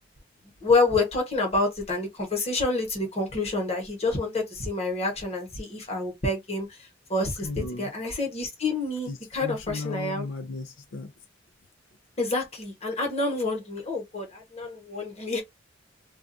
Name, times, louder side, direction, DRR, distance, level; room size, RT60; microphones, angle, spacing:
voice 1, 0.6-10.3 12.2-15.4, left 2 dB, 35° left, 1.1 m, -28 dB
voice 2, 7.4-7.9 9.1-11.1, left 3 dB, 85° left, 0.4 m, -36 dB
2.4 x 2.3 x 2.6 m
head